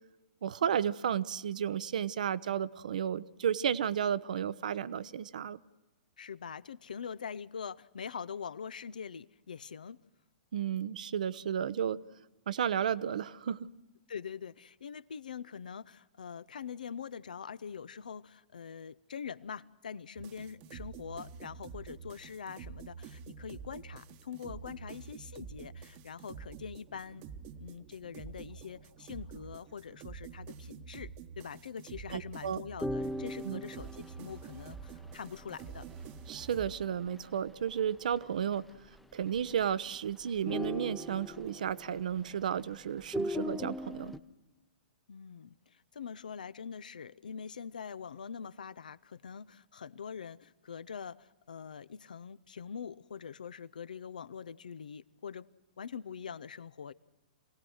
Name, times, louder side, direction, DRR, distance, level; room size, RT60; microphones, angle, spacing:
voice 1, 0.4-5.6 10.5-12.0 12.5-13.7 32.1-32.6 33.4-33.6 36.3-38.7 39.1-44.2, right 8 dB, 65° right, 0.7 m, -33 dB
voice 2, 6.2-10.0 14.1-27.2 27.6-35.9 45.1-55.5 55.8-56.9, left 7 dB, 70° left, 0.6 m, -44 dB
sound 1, 20.2-36.7, right 7 dB, 40° right, 1.1 m, -48 dB
sound 2, 32.8-37.8 38.1-38.2 38.5-39.0 39.3-40.0 40.3-42.6 43.0-44.2, left 1 dB, 5° left, 0.8 m, -40 dB
27.5 x 18.0 x 6.3 m
figure-of-eight pair, 110°, 5 cm